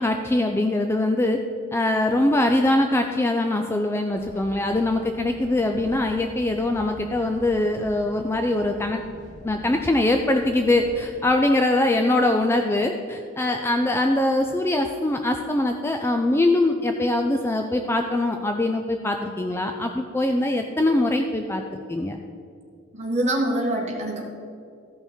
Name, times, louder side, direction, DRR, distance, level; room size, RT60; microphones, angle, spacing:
voice 1, 0.0-1.4 1.7-9.0 9.4-22.2, left 1 dB, 10° left, 4 dB, 0.3 m, -22 dB
sound 1, 4.1-11.0, equal, 35° left, 1.6 m, -45 dB
voice 2, 22.9-24.2, right 1 dB, 30° right, -1 dB, 1.5 m, -24 dB
14.0 x 5.7 x 4.4 m, 2.4 s
head